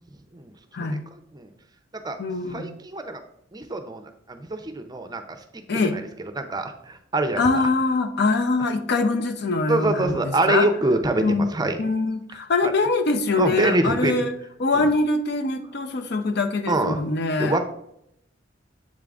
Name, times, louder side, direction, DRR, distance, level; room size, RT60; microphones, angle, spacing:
voice 1, 0.8-1.5 2.0-2.2 2.5-3.2 3.5-5.4 5.9-6.0 6.3-7.6 9.7-11.8 12.6-12.7 13.4-14.3 14.7-14.8 16.7-17.0 17.4-17.7, right 2 dB, 20° right, 7 dB, 0.5 m, -25 dB
voice 2, 2.2-2.7 5.7-6.0 7.4-10.7 11.2-11.5 11.8-14.3 14.6-17.6, left 3 dB, 60° left, 8 dB, 0.6 m, -23 dB
7.5 x 3.7 x 3.6 m, 0.75 s
head